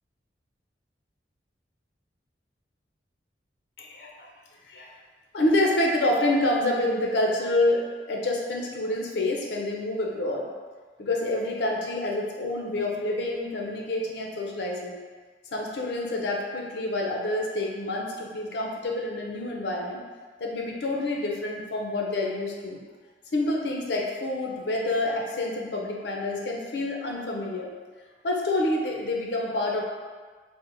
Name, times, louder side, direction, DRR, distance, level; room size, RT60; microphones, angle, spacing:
voice 1, 3.8-4.3 4.7-4.9 5.3-10.5 11.0-15.0 15.5-20.0 20.4-22.8 23.3-27.7 28.2-29.8, left 1 dB, 70° left, 0 dB, 0.5 m, -27 dB
3.5 x 2.1 x 3.3 m, 1.5 s
head